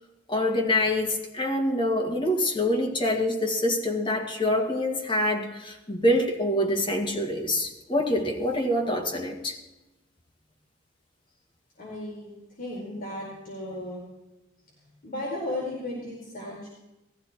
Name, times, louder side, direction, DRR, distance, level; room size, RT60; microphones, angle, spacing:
voice 1, 0.3-9.6, left 1 dB, 25° left, 1 dB, 1.9 m, -25 dB
voice 2, 11.8-12.3 12.6-14.0 15.0-16.7, left 1 dB, 50° left, -5 dB, 4.6 m, -35 dB
19.0 x 15.0 x 4.5 m, 1.0 s
head